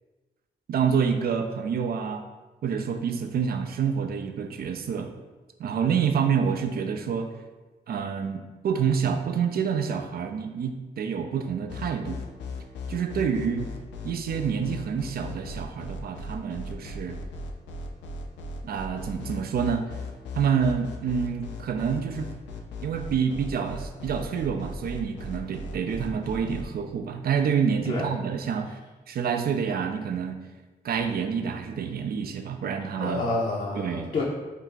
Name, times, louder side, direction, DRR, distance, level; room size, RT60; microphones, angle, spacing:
voice 1, 0.7-2.2 2.6-5.1 5.6-7.3 7.9-12.2 12.9-13.7 14.0-17.2 18.6-19.9 20.4-22.3 22.8-28.8 29.1-30.4 30.8-33.2 33.8-34.1, right 7 dB, 55° right, 6 dB, 0.4 m, -27 dB
sound 1, 11.7-26.6, left 2 dB, 80° left, 0.4 m, -37 dB
voice 2, 32.9-34.2, left 2 dB, 40° left, -5 dB, 0.6 m, -28 dB
2.7 x 2.3 x 3.7 m, 1.2 s
supercardioid pair, 55°, 18 cm